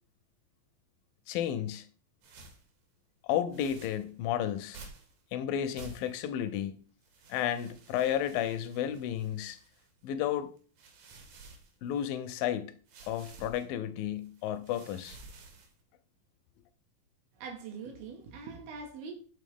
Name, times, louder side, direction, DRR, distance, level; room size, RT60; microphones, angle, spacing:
voice 1, 1.3-1.9 3.2-4.8 5.3-6.8 7.3-9.6 10.0-10.5 11.8-12.7 13.1-15.2, left 10 dB, 80° left, 2.2 m, -32 dB
sound 1, 2.2-2.7 3.5-4.1 4.7-5.2 5.7-6.3 7.0-10.0 10.6-12.2 12.9-13.6 14.2-15.8, right 3 dB, 65° right, 2.1 m, -52 dB
voice 2, 17.4-19.1, right 5 dB, 80° right, 3.1 m, -43 dB
8.4 x 3.7 x 3.5 m
omnidirectional pair, 4.2 m